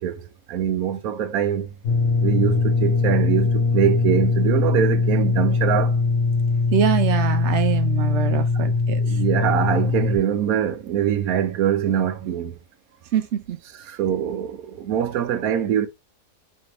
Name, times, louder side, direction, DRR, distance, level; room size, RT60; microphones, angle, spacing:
voice 1, 0.0-1.7 2.2-6.0 9.0-12.6 13.9-15.9, right 9 dB, 75° right, 1.1 m, -23 dB
sound 1, 1.8-10.2, left 4 dB, 65° left, 1.3 m, -21 dB
voice 2, 6.7-9.2 13.1-13.6, right 9 dB, 60° right, 0.9 m, -24 dB
4.0 x 3.4 x 2.9 m
omnidirectional pair, 1.6 m